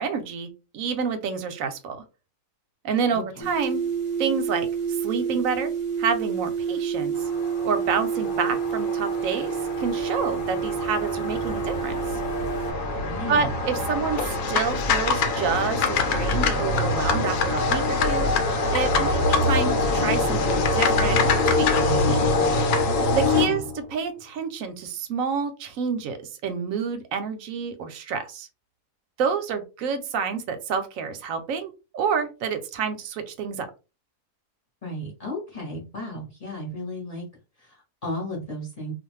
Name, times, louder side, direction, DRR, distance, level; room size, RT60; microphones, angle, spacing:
voice 1, 0.0-2.0 2.8-3.8 4.2-5.7 6.0-7.1 7.6-12.0 13.3-18.3 18.7-22.3 23.1-26.2 26.4-28.5 29.2-33.7, right 6 dB, 70° right, 8 dB, 0.9 m, -28 dB
voice 2, 3.1-3.5 13.0-13.5 23.2-23.6 34.8-37.2 37.6-38.9, left 1 dB, 35° left, -2 dB, 0.7 m, -34 dB
sound 1, 3.4-12.7, right 7 dB, 40° right, 0.7 m, -28 dB
sound 2, 7.2-24.0, left 2 dB, 90° left, 1.2 m, -25 dB
sound 3, 14.1-22.9, left 6 dB, 70° left, 1.0 m, -28 dB
2.5 x 2.3 x 3.1 m, 0.30 s
omnidirectional pair, 1.7 m